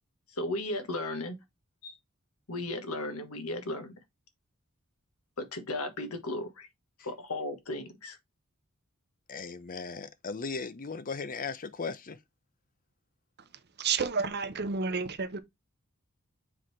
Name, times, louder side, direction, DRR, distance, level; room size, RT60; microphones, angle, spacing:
voice 1, 0.3-1.4 1.8-2.0 2.5-3.9 5.4-6.7 7.0-8.2, left 2 dB, 80° left, 1.5 m, -35 dB
voice 2, 9.3-12.2, left 4 dB, 40° left, 0.7 m, -37 dB
voice 3, 13.8-15.4, right 5 dB, 50° right, 0.9 m, -30 dB
7.5 x 3.9 x 3.2 m
head